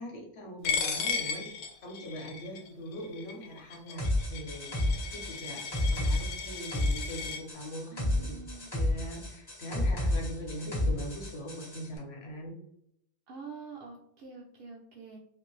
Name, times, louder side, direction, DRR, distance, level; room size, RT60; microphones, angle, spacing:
voice 1, 0.0-4.0 4.3-8.4 8.7-12.5, equal, 60° left, 1 dB, 1.0 m, -41 dB
Coin (dropping), 0.6-7.4, left 6 dB, 80° left, 0.9 m, -36 dB
sound 1, 4.0-11.8, left 1 dB, 25° left, 0.7 m, -31 dB
voice 2, 7.9-8.7 13.3-15.2, right 4 dB, 60° right, -2 dB, 0.6 m, -46 dB
2.6 x 2.5 x 3.0 m, 0.73 s
omnidirectional pair, 1.3 m